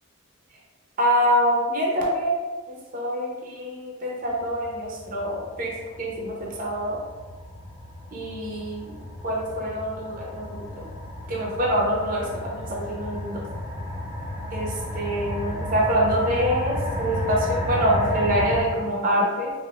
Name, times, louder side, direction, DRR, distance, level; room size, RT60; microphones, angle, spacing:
voice 1, 1.0-2.4 2.7-7.0 8.1-9.0 9.2-10.9 11.3-13.4 14.5-19.5, equal, 45° right, -3 dB, 0.7 m, -25 dB
sound 1, 4.2-18.6, left 1 dB, 10° right, 0.6 m, -33 dB
4.9 x 2.6 x 2.4 m, 1.3 s
head